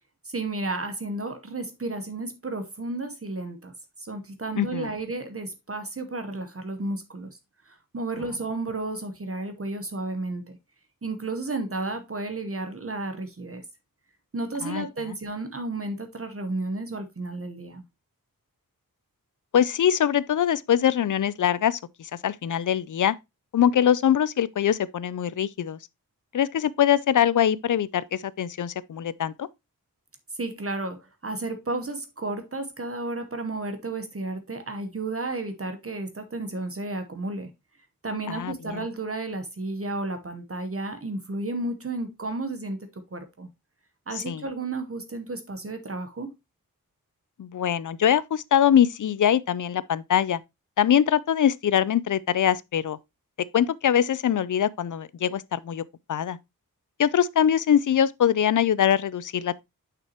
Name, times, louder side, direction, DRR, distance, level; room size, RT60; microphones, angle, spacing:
voice 1, 0.2-3.7 4.0-7.3 7.6-10.6 11.0-13.6 14.3-17.8 30.4-37.5 38.0-43.5 44.1-46.3, right 2 dB, 40° right, 1.0 m, -32 dB
voice 2, 4.6-4.9 14.6-14.9 19.5-23.2 23.5-25.8 26.3-29.5 38.3-38.8 44.2-44.4 47.4-50.4 50.8-53.0 53.5-55.8 56.1-56.4 57.0-59.6, left 9 dB, 60° left, 0.5 m, -23 dB
6.6 x 5.9 x 2.8 m
wide cardioid pair, 80°, 35 cm